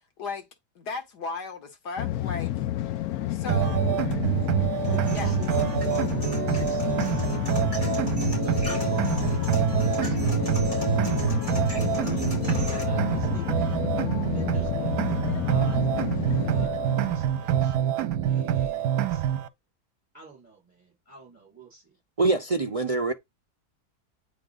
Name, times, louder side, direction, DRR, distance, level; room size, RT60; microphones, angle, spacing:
voice 1, 0.8-2.5 3.3-4.0 5.1-5.7, left 4 dB, 90° left, 2.1 m, -36 dB
sound 1, 2.0-17.7, left 13 dB, 70° left, 1.1 m, -30 dB
sound 2, 3.5-19.5, right 11 dB, 70° right, 1.1 m, -26 dB
voice 2, 3.6-4.0 4.8-7.8 8.4-11.0 12.1-13.9 14.3-18.0 18.3-19.3 20.1-22.0, right 4 dB, 10° right, 4.7 m, -49 dB
sound 3, 4.8-12.8, equal, 20° left, 4.1 m, -37 dB
voice 3, 22.2-23.1, right 3 dB, 50° right, 0.4 m, -24 dB
9.0 x 4.0 x 3.9 m
omnidirectional pair, 1.7 m